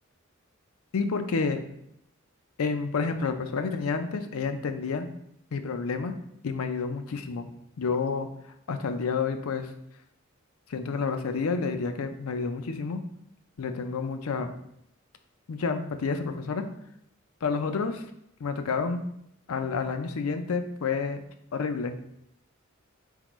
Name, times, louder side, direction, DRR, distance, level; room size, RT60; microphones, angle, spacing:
voice 1, 0.9-1.6 2.6-5.1 5.5-6.1 6.4-7.5 7.8-8.3 8.7-9.7 10.7-13.0 13.6-14.5 15.5-16.7 17.4-18.0 18.4-19.0 19.5-21.2 21.5-22.0, left 4 dB, 85° left, 8 dB, 0.5 m, -29 dB
4.4 x 3.7 x 3.0 m, 0.75 s
head